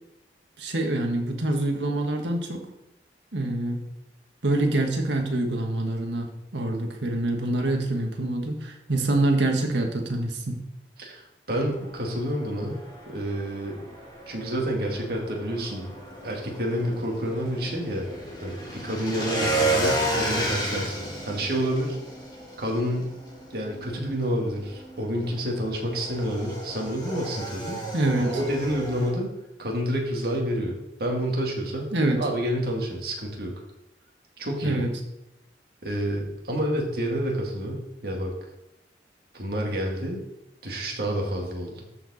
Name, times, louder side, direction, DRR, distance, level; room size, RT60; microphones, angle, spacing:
voice 1, 0.6-2.7 3.3-3.8 4.4-6.3 6.5-10.6 27.9-28.4 31.9-32.2 34.6-34.9, right 2 dB, 85° right, 2 dB, 1.6 m, -25 dB
voice 2, 11.0-12.8 13.1-13.8 14.3-15.9 16.2-18.0 18.4-22.0 22.6-23.1 23.5-27.8 28.2-29.3 29.6-30.7 31.0-31.9 32.2-33.5 34.4-34.9 35.8-38.3 39.3-40.2 40.6-41.8, equal, 60° right, 0 dB, 2.0 m, -29 dB
Motorcycle / Engine, 11.7-29.1, right 1 dB, 25° left, 2.0 m, -33 dB
13.0 x 4.7 x 4.2 m, 0.87 s
head